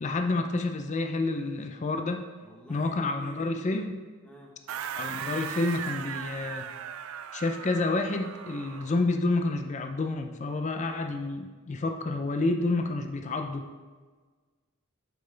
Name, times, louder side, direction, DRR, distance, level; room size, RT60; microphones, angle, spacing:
voice 1, 0.0-2.3 2.7-4.0 5.0-6.7 7.3-13.7, left 2 dB, 35° left, 6 dB, 0.4 m, -29 dB
voice 2, 2.4-3.5 4.2-4.5, right 1 dB, 5° left, -2 dB, 1.1 m, -49 dB
sound 1, 4.7-9.1, right 8 dB, 70° right, 0.3 m, -38 dB
7.5 x 5.4 x 3.3 m, 1.4 s
head